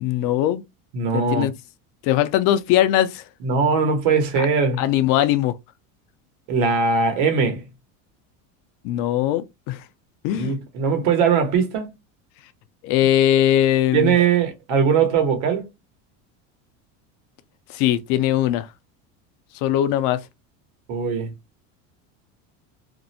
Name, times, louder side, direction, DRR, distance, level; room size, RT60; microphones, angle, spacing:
voice 1, 0.0-0.6 1.1-1.5 2.0-3.2 4.4-4.5 4.8-5.5 8.8-9.8 10.2-10.6 12.8-14.2 17.7-18.7 19.6-20.2, left 12 dB, 60° left, 0.5 m, -20 dB
voice 2, 0.9-1.5 3.4-4.8 6.5-7.6 10.3-11.9 13.9-15.6 20.9-21.3, right 5 dB, 70° right, 1.1 m, -20 dB
2.6 x 2.1 x 2.7 m
supercardioid pair, 135°, 39 cm